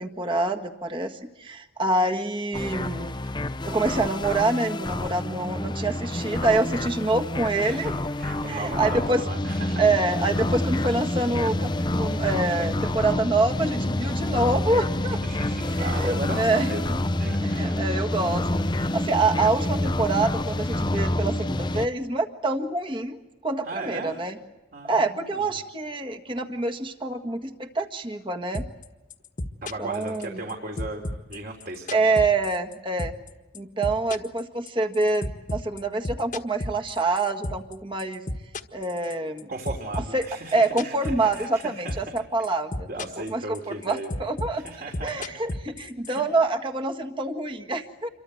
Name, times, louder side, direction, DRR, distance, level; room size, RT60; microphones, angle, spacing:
voice 1, 0.0-3.1 3.6-8.0 8.5-9.2 9.8-15.2 15.8-17.0 17.6-24.4 24.9-28.6 29.8-30.4 31.9-33.1 33.5-38.2 38.7-39.5 40.1-40.2 40.5-42.9 43.3-48.1, right 2 dB, 25° right, 4 dB, 1.7 m, -26 dB
sound 1, 2.5-21.9, left 1 dB, 25° left, 0.8 m, -28 dB
voice 2, 7.6-7.9 8.2-9.8 15.2-16.9 17.2-17.8 23.7-24.2 24.7-25.5 29.6-32.1 39.5-42.0 42.9-44.1 44.6-45.1 46.1-46.2, right 2 dB, 50° right, 2 dB, 3.4 m, -36 dB
sound 2, 28.5-28.9 29.1-30.5 30.8-32.7 33.0-33.3 33.5-37.7 38.0-39.4 39.7-41.6 41.9-42.2 42.4-43.3 43.5-46.2, left 1 dB, 45° left, 1.5 m, -32 dB
28.0 x 24.0 x 7.9 m, 1.1 s
head